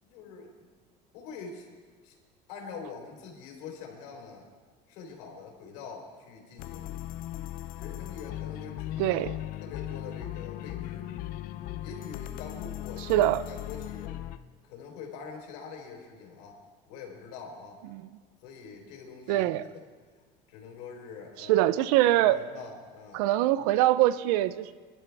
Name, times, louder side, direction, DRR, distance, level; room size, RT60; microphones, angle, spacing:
voice 1, 0.0-0.7 1.1-1.7 2.0-2.2 2.5-4.5 4.9-6.9 7.7-9.3 9.6-11.1 11.8-14.2 14.6-16.6 16.9-17.8 18.4-19.8 20.5-21.7 22.1-23.2, left 5 dB, 80° left, 1 dB, 3.9 m, -44 dB
sound 1, 6.6-14.4, left 14 dB, 45° left, 0.5 m, -38 dB
voice 2, 9.0-9.3 13.1-13.4 17.9-18.0 19.3-19.6 21.4-22.4 23.1-24.7, right 14 dB, 75° right, 16 dB, 0.6 m, -23 dB
27.5 x 12.0 x 3.5 m, 1.5 s
cardioid pair, 170°, 20 cm